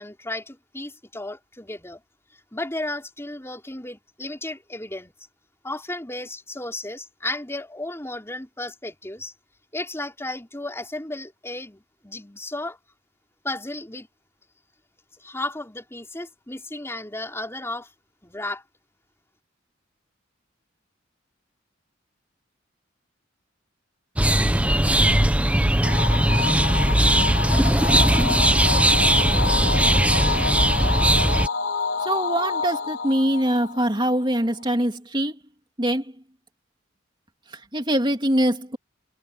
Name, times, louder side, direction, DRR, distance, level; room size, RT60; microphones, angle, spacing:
voice 1, 0.0-2.0 2.5-5.1 5.6-9.3 9.7-12.8 13.4-14.1 15.2-17.9 18.2-18.6, left 2 dB, 15° left, 4.8 m, -34 dB
sound 1, 24.2-31.5, right 1 dB, 5° right, 0.7 m, -19 dB
sound 2, 25.8-34.4, left 5 dB, 80° left, 3.0 m, -28 dB
voice 2, 32.0-35.4 35.8-36.0 37.7-38.8, right 1 dB, 25° right, 2.9 m, -23 dB
head